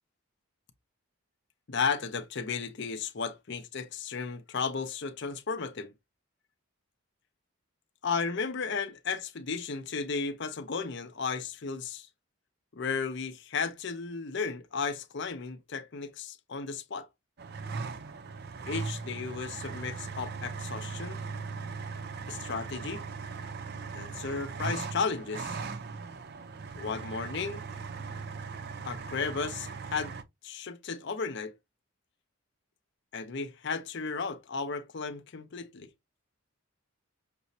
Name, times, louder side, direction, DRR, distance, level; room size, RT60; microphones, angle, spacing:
voice 1, 1.7-5.9 8.0-12.1 12.7-17.1 18.7-21.2 22.3-23.0 23.9-25.6 26.7-27.6 28.8-30.1 30.4-31.5 33.1-35.9, left 5 dB, 55° left, 0.5 m, -34 dB
sound 1, 17.4-30.2, right 4 dB, 45° right, 0.4 m, -39 dB
6.0 x 2.1 x 2.6 m
head